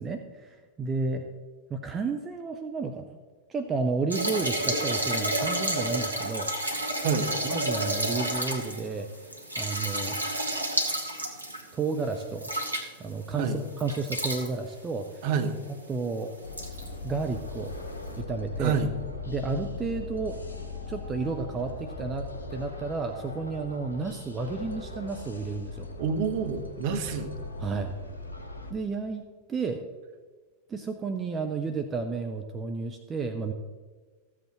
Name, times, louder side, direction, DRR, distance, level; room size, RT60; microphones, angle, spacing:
voice 1, 0.0-1.3 1.7-3.1 3.5-6.5 7.4-9.1 9.6-10.2 11.7-12.5 13.0-15.3 15.9-16.3 17.0-17.7 18.2-18.8 19.3-20.4 20.9-25.9 27.6-27.9 28.7-29.2 29.5-29.8 30.7-33.5, right 4 dB, 20° right, 6 dB, 0.6 m, -31 dB
sound 1, 4.1-13.3 13.8-14.5 15.4-15.5 15.9-16.0 16.5-16.9 17.9-18.0, right 1 dB, 80° right, 1.1 m, -30 dB
voice 2, 15.2-15.6 18.6-18.9 26.0-27.3, right 6 dB, 50° right, 6 dB, 1.1 m, -27 dB
sound 2, 16.4-28.7, left 3 dB, 75° left, 1.3 m, -39 dB
14.0 x 7.8 x 3.1 m, 1.4 s
figure-of-eight pair, 90°, 0 cm